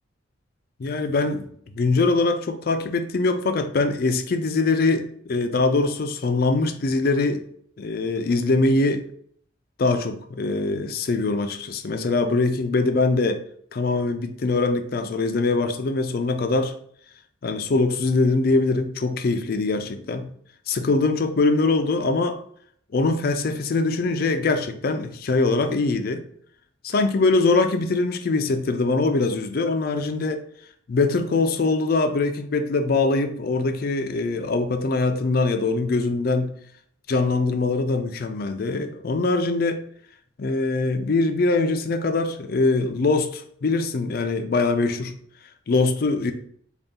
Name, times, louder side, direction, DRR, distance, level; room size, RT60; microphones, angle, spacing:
voice 1, 0.8-1.5 1.8-7.4 7.8-9.0 9.8-13.4 13.7-16.7 17.4-20.3 20.7-22.4 22.9-26.2 26.8-30.4 30.9-36.5 37.1-39.8 40.4-45.1 45.7-46.3, left 3 dB, 50° left, 7 dB, 0.4 m, -22 dB
3.9 x 2.4 x 3.6 m, 0.62 s
head